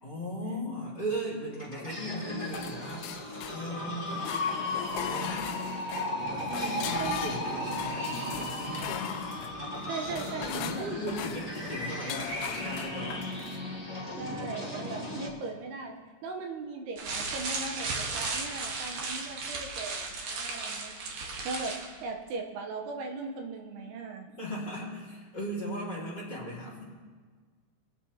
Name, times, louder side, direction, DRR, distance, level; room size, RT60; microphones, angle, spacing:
voice 1, 0.0-4.2 5.0-5.5 6.3-9.5 10.5-13.3 24.4-26.8, equal, 30° left, -7 dB, 2.5 m, -37 dB
sound 1, 1.5-15.3, left 1 dB, 10° right, 2.1 m, -36 dB
sound 2, 2.5-3.9 4.2-13.6, left 11 dB, 80° left, 2.5 m, -40 dB
voice 2, 6.8-7.3 7.5-7.7 8.0-8.4 9.9-11.2 14.2-16.0 16.2-21.0 21.4-21.8 22.0-24.3, right 3 dB, 80° right, 2 dB, 2.8 m, -39 dB
sound 3, 17.0-22.0, right 3 dB, 60° right, 2.1 m, -35 dB
22.5 x 9.3 x 2.8 m, 1.5 s
omnidirectional pair, 5.0 m